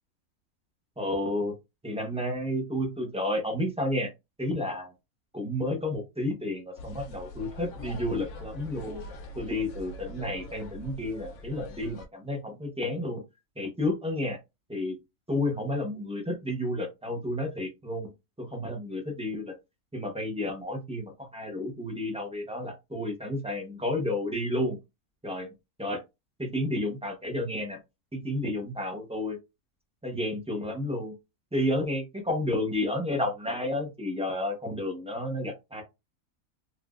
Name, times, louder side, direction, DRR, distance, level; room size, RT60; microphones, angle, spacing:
voice 1, 1.0-1.6 1.8-4.1 4.4-4.9 5.3-9.0 9.4-13.2 13.6-14.4 14.7-15.0 15.3-18.1 18.4-19.5 19.9-24.8 25.2-25.5 25.8-26.0 26.4-27.8 28.1-29.4 30.0-31.1 31.5-35.8, left 1 dB, 5° right, 2 dB, 0.6 m, -31 dB
sound 1, 6.8-12.1, left 1 dB, 70° left, 1.1 m, -43 dB
3.5 x 2.7 x 2.4 m, 0.23 s
omnidirectional pair, 1.6 m